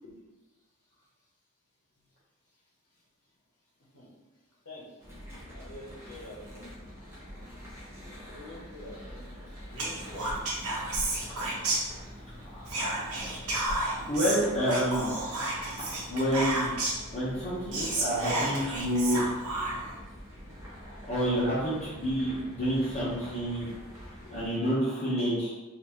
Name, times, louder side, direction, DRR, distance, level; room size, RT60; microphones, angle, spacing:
sound 1, 5.0-24.5, equal, 15° right, 1.1 m, -46 dB
voice 1, 5.5-6.7 8.3-9.2 9.7-10.4 23.0-23.2, left 1 dB, 80° left, -6 dB, 0.9 m, -46 dB
Whispering, 9.8-12.3 12.7-17.1 17.4-17.5 17.7-20.0, right 2 dB, 80° right, 0.9 m, -31 dB
voice 2, 14.1-15.1 16.1-16.7 17.1-19.2 21.0-23.7 24.3-25.5, equal, 30° left, -10 dB, 1.0 m, -28 dB
4.3 x 2.7 x 2.9 m, 1.1 s
head